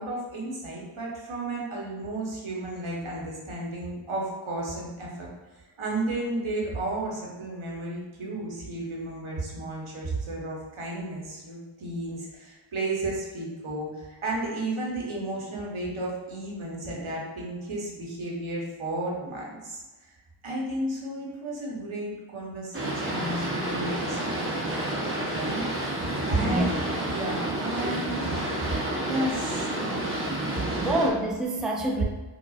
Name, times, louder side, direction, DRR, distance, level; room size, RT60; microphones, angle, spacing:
voice 1, 0.0-5.3 5.8-20.1 20.4-25.6 26.3-26.6 27.1-28.4 29.1-29.7 30.5-30.7, right 2 dB, 80° right, -3 dB, 1.1 m, -33 dB
Boat Water vehicle, 22.7-31.1, right 1 dB, 25° right, 0.9 m, -30 dB
voice 2, 26.4-26.8 30.8-32.0, right 1 dB, ahead, -1 dB, 0.4 m, -26 dB
4.8 x 2.4 x 2.4 m, 1.2 s
wide cardioid pair, 50°, 48 cm